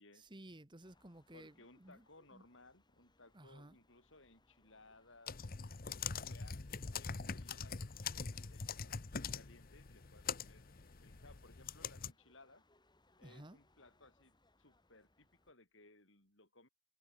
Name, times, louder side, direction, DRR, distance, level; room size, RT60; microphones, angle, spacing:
voice 1, 0.1-2.0 2.3-2.4 3.3-3.8 13.2-13.6, right 1 dB, 20° right, 1.4 m, -55 dB
sound 1, 0.8-15.5, left 2 dB, 20° left, 7.8 m, -74 dB
voice 2, 1.3-5.4 5.9-10.6 11.0-12.6 13.2-16.7, left 2 dB, 60° left, 7.8 m, -63 dB
sound 2, 5.3-12.1, left 6 dB, 45° left, 0.9 m, -43 dB
head